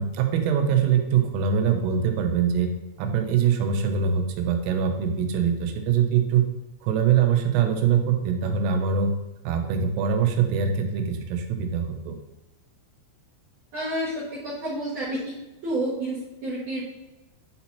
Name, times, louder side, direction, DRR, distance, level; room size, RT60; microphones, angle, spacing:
voice 1, 0.0-2.7 3.0-6.4 6.8-9.1 9.5-12.2, right 7 dB, 85° right, 4 dB, 3.3 m, -23 dB
voice 2, 13.7-15.3 15.6-16.8, right 1 dB, 60° right, -10 dB, 2.1 m, -29 dB
10.5 x 4.3 x 2.8 m, 1.0 s
omnidirectional pair, 5.9 m